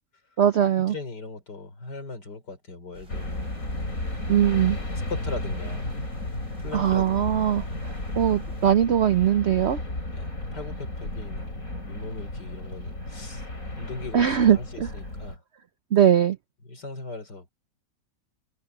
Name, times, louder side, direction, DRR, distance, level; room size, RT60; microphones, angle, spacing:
voice 1, 0.4-0.9 4.3-4.8 6.7-9.8 14.1-14.9 15.9-16.4, right 9 dB, 70° right, 0.6 m, -21 dB
voice 2, 0.9-3.6 5.1-6.0 6.6-7.4 10.1-13.4 13.8-15.4 16.6-17.5, left 3 dB, 70° left, 4.8 m, -39 dB
sound 1, 2.9-8.7, right 1 dB, 20° right, 3.9 m, -49 dB
sound 2, 3.1-15.4, left 1 dB, 50° left, 6.4 m, -33 dB
omnidirectional pair, 1.9 m